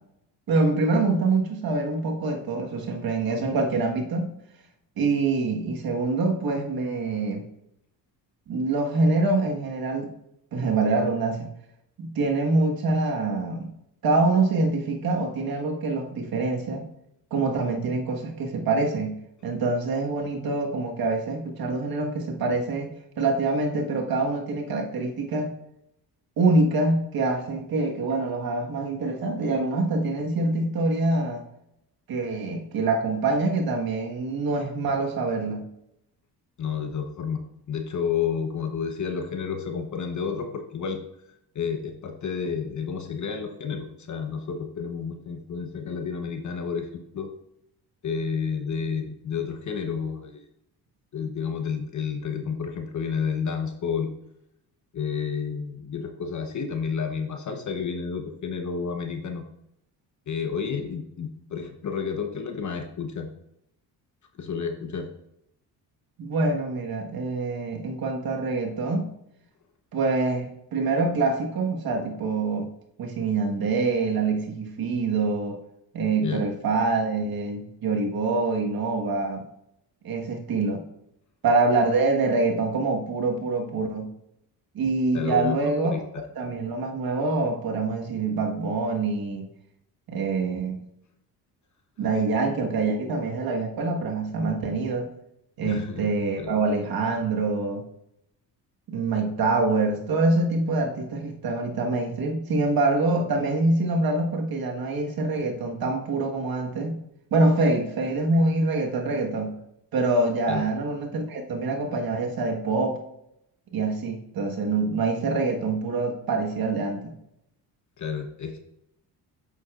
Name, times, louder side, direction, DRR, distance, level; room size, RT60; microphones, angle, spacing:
voice 1, 0.5-4.3 5.0-7.4 8.5-10.1 10.5-11.5 12.0-13.7 14.0-16.8 17.3-19.2 19.4-22.9 23.2-25.5 26.4-31.4 32.1-35.6 66.2-69.1 69.9-72.7 73.0-75.6 75.9-79.4 80.0-80.8 81.4-84.1 84.7-86.0 86.4-89.5 90.1-90.8 92.0-95.1 95.6-97.9 98.9-107.0 107.3-109.5 109.9-113.0 113.7-117.1, right 3 dB, 60° right, 2 dB, 1.5 m, -25 dB
voice 2, 36.6-41.0 41.5-47.3 48.0-50.4 51.1-54.1 54.9-59.4 60.3-63.3 64.4-65.1 76.2-76.4 85.1-86.2 95.6-96.0 96.4-96.5 110.5-110.6 118.0-118.6, left 6 dB, 45° left, 5 dB, 1.0 m, -30 dB
8.2 x 7.0 x 2.5 m, 0.79 s
supercardioid pair, 75°, 40 cm